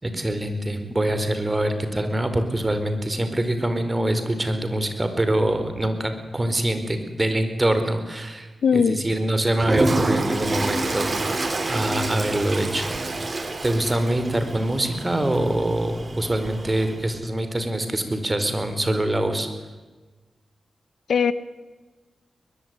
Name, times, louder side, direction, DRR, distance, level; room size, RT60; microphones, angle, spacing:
voice 1, 0.0-12.9 13.6-19.5, right 1 dB, 25° right, 8 dB, 4.7 m, -24 dB
voice 2, 8.6-9.0 21.1-21.3, left 6 dB, 80° left, 14 dB, 1.2 m, -19 dB
Toilet flush, 9.6-17.1, right 2 dB, 40° right, 3.6 m, -28 dB
22.0 x 21.5 x 9.7 m, 1.3 s
cardioid pair, 70°, 0 cm